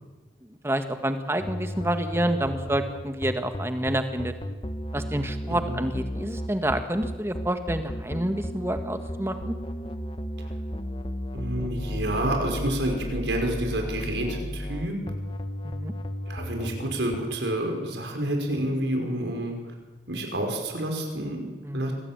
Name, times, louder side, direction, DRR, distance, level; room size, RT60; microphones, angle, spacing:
voice 1, 0.6-4.3 4.9-9.5 15.6-15.9 21.6-21.9, right 1 dB, 15° right, 7 dB, 1.7 m, -28 dB
sound 1, 1.4-17.2, equal, 30° left, 1.4 m, -34 dB
voice 2, 11.3-15.0 16.3-19.6 20.1-21.9, right 1 dB, 85° right, 2 dB, 5.4 m, -29 dB
25.0 x 19.0 x 8.9 m, 1.2 s
head